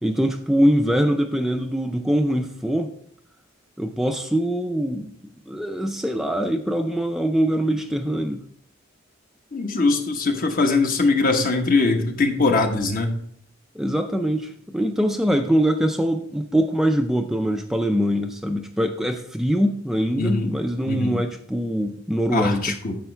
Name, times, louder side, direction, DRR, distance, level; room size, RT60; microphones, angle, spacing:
voice 1, 0.0-2.9 3.8-5.1 5.5-8.4 13.8-22.8, equal, ahead, 4 dB, 0.4 m, -23 dB
voice 2, 9.5-13.1 20.2-20.5 20.8-21.2 22.3-23.0, left 3 dB, 45° left, 4 dB, 1.1 m, -21 dB
10.5 x 7.1 x 3.3 m, 0.64 s
head